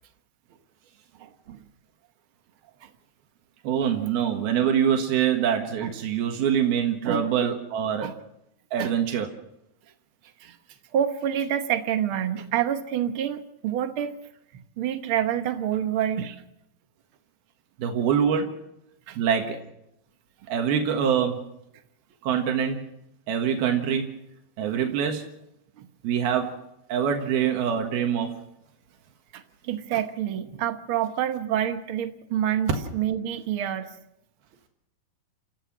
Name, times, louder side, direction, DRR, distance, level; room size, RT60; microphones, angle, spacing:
voice 1, 1.1-1.6 2.8-2.9 5.8-5.9 7.0-7.2 8.0-8.1 8.8-8.9 10.4-10.6 10.9-14.2 14.5-16.4 19.1-19.2 25.8-25.9 29.3-33.9, right 10 dB, 70° right, 7 dB, 1.2 m, -28 dB
voice 2, 3.6-8.1 8.7-9.3 17.8-18.6 19.2-19.6 20.5-21.4 22.2-22.8 23.3-24.2 24.6-25.3 26.0-26.6 26.9-28.3, right 8 dB, 90° right, 3 dB, 3.5 m, -24 dB
29.5 x 14.0 x 6.2 m, 0.83 s
omnidirectional pair, 4.2 m